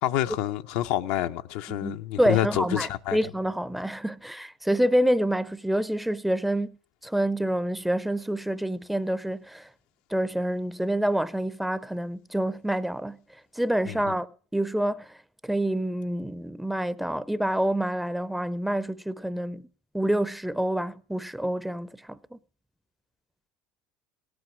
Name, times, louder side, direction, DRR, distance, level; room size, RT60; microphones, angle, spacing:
voice 1, 0.0-3.2 13.9-14.0, left 13 dB, 75° left, 0.6 m, -28 dB
voice 2, 1.7-6.8 7.0-9.7 10.1-14.3 14.5-15.2 15.4-19.6 19.9-22.4, right 1 dB, 5° right, 0.5 m, -27 dB
17.5 x 7.8 x 6.1 m
supercardioid pair, 85°, 3 cm